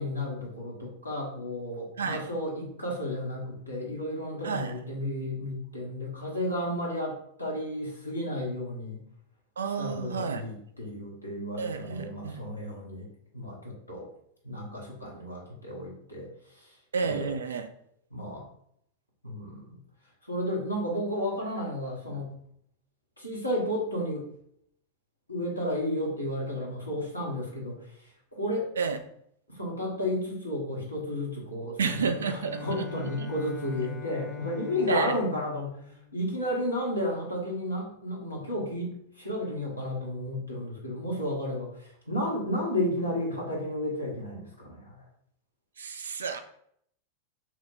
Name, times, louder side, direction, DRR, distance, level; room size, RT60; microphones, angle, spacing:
voice 1, 0.0-9.0 9.8-14.1 14.4-16.7 17.0-17.4 18.1-18.5 19.2-19.8 20.3-22.3 23.2-24.3 25.3-28.7 29.5-35.8 36.1-45.0, left 1 dB, 85° left, -3 dB, 1.0 m, -33 dB
voice 2, 4.4-4.7 9.6-10.4 11.6-12.4 16.9-17.7 28.8-29.0 31.8-32.6 33.2-33.3 34.9-35.2 45.8-46.4, right 5 dB, 70° right, 7 dB, 0.3 m, -30 dB
Bowed string instrument, 31.8-36.9, left 6 dB, 20° left, 0.5 m, -43 dB
2.9 x 2.1 x 4.1 m, 0.69 s
figure-of-eight pair, 90°, 0 cm